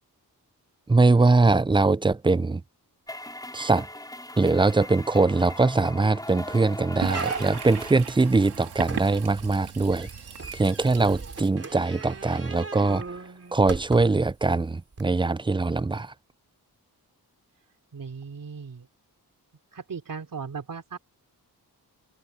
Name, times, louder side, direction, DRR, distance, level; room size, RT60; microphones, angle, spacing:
voice 1, 0.9-2.6 3.5-3.9 4.4-10.1 10.5-13.0 13.5-16.1, right 3 dB, 15° right, 0.4 m, -22 dB
sound 1, 3.1-8.0, left 1 dB, 10° left, 4.5 m, -39 dB
sound 2, 5.8-6.1 6.5-6.6 7.1-7.8 8.8-14.3 14.9-15.0, right 4 dB, 35° right, 3.9 m, -38 dB
Toilet flush, 7.0-13.5, right 7 dB, 75° right, 2.0 m, -39 dB
voice 2, 17.9-18.9 19.7-21.0, right 5 dB, 55° right, 3.4 m, -37 dB
wide cardioid pair, 100°, 39 cm